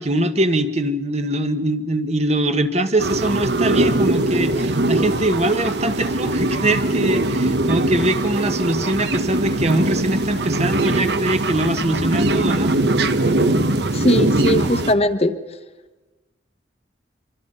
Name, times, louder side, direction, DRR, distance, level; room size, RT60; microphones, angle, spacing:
voice 1, 0.0-12.7, right 1 dB, 35° right, 8 dB, 1.2 m, -22 dB
sound 1, 3.0-14.9, right 2 dB, 65° right, 1.0 m, -21 dB
voice 2, 13.9-15.3, left 1 dB, 35° left, 10 dB, 1.1 m, -19 dB
25.0 x 24.0 x 5.5 m, 1.2 s
head